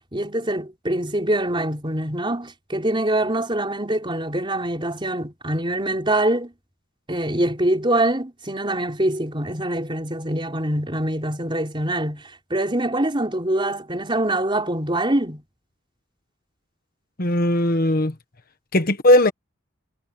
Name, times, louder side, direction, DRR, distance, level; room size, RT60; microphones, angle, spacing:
voice 1, 0.1-6.5 7.1-15.4, right 1 dB, 25° right, 4.6 m, -24 dB
voice 2, 17.2-18.1 18.7-19.3, left 1 dB, 45° left, 1.2 m, -18 dB
head